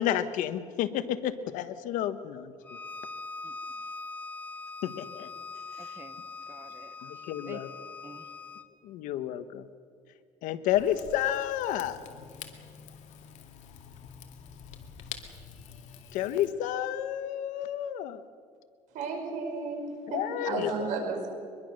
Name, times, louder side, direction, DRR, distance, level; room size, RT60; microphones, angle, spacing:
voice 1, 0.0-2.5 4.8-5.3 7.0-7.7 8.8-9.7 10.4-12.0 16.1-18.2 20.1-20.9, left 11 dB, 85° left, 12 dB, 1.2 m, -31 dB
Bowed string instrument, 2.6-8.7, left 3 dB, 10° left, 0.7 m, -42 dB
voice 2, 5.8-7.6 8.0-8.3, right 3 dB, 20° right, 8 dB, 1.1 m, -50 dB
Rain / Fire, 10.7-16.5, left 8 dB, 65° left, 2.2 m, -47 dB
voice 3, 18.9-21.3, right 4 dB, 75° right, 3 dB, 5.8 m, -33 dB
24.0 x 22.0 x 6.5 m, 2.2 s
cardioid pair, 145°, 13 cm